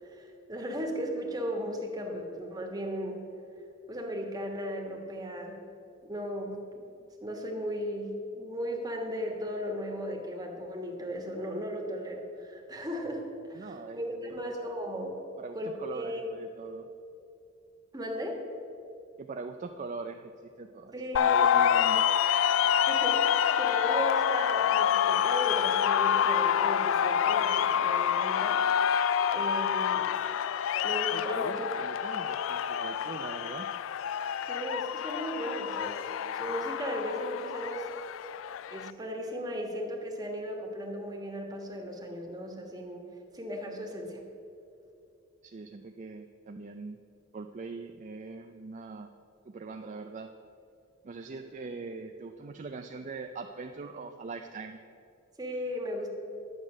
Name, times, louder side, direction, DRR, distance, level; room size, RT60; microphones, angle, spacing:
voice 1, 0.0-3.2 3.9-5.6 6.0-6.6 7.2-15.1 15.5-16.2 17.9-18.5 20.9-21.5 22.8-28.6 29.3-30.1 30.8-31.7 34.5-36.1 36.3-37.9 38.7-43.1 43.3-44.2 55.4-56.1, equal, 20° right, 1 dB, 1.5 m, -36 dB
voice 2, 13.5-14.8 15.4-16.9 19.2-22.0 31.1-33.7 45.4-47.0 47.3-49.1 49.5-50.4 51.0-54.8, right 4 dB, 40° right, 6 dB, 0.4 m, -42 dB
sound 1, 21.2-38.9, left 9 dB, 70° left, 0.3 m, -27 dB
10.5 x 8.0 x 6.2 m, 2.6 s
head